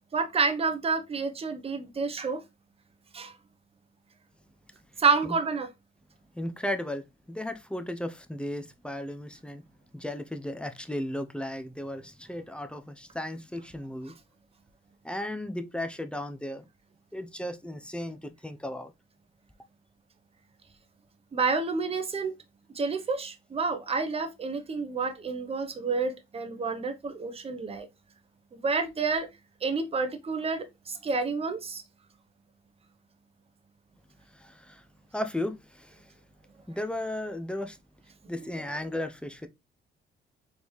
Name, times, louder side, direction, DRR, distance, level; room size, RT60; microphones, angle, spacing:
voice 1, 0.1-2.4 3.1-3.3 5.0-5.7 21.3-22.3 22.7-27.9 28.5-29.3 29.6-31.8, right 4 dB, 30° right, 0.8 m, -29 dB
voice 2, 6.4-9.6 9.9-14.1 15.0-16.6 17.1-18.9 34.3-34.8 35.1-36.0 36.7-37.8 38.3-39.5, left 1 dB, 5° left, 0.6 m, -35 dB
4.0 x 3.5 x 3.1 m
cardioid pair, 90°, 20 cm